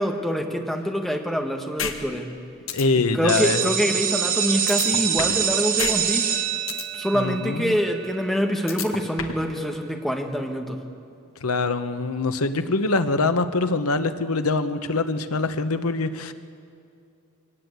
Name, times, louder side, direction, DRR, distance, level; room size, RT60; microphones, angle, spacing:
voice 1, 0.0-2.3 2.9-6.3 6.9-10.8, equal, ahead, 2 dB, 1.7 m, -25 dB
sound 1, 1.8-1.9 2.3-2.4 2.7-2.8 4.7-5.4 5.8-5.9 6.3-6.8 8.7-9.4, left 6 dB, 65° left, 1.6 m, -29 dB
voice 2, 2.7-3.7 7.1-7.8 11.4-16.3, left 3 dB, 85° left, 10 dB, 1.0 m, -24 dB
sound 2, 3.3-8.9, right 8 dB, 40° right, 1.3 m, -26 dB
23.0 x 19.0 x 8.2 m, 2.6 s
head